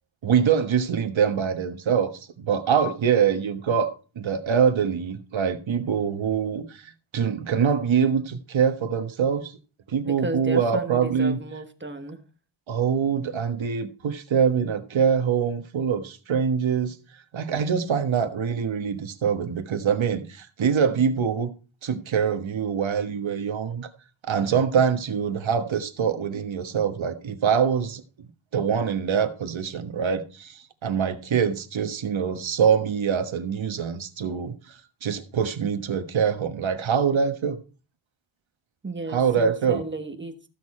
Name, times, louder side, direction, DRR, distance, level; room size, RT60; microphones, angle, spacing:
voice 1, 0.2-9.5 9.9-11.4 12.7-17.0 17.3-21.5 21.8-23.9 24.3-28.0 28.5-34.5 35.0-37.6 39.1-39.8, right 7 dB, 80° right, 1.3 m, -24 dB
voice 2, 9.9-12.2 38.8-40.3, right 2 dB, 25° right, 1.3 m, -34 dB
14.5 x 6.5 x 4.2 m
wide cardioid pair, 120°, 46 cm